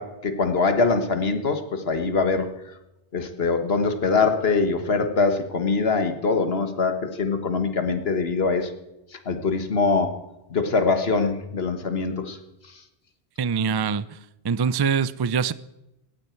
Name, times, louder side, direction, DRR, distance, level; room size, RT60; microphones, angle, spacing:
voice 1, 0.0-2.5 3.1-8.7 9.3-10.1 10.5-12.4, left 4 dB, 70° left, 1.7 m, -23 dB
voice 2, 13.4-14.2 14.4-15.5, right 6 dB, 40° right, 0.3 m, -24 dB
18.0 x 14.5 x 4.5 m
omnidirectional pair, 1.1 m